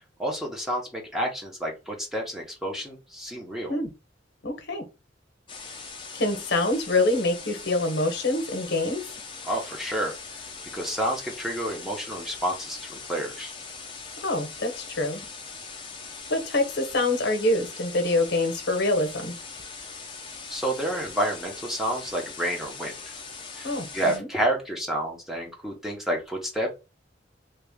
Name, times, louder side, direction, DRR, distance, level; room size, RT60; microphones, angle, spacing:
voice 1, 0.2-3.7 9.4-10.1 10.7-13.5 20.5-22.9 23.5-26.7, right 1 dB, ahead, 0.9 m, -29 dB
voice 2, 4.4-4.9 6.1-9.0 14.2-15.2 16.3-19.3 23.6-24.3, left 2 dB, 65° left, 0.9 m, -25 dB
sound 1, 5.5-24.2, left 4 dB, 25° left, 0.6 m, -41 dB
2.9 x 2.4 x 3.5 m
head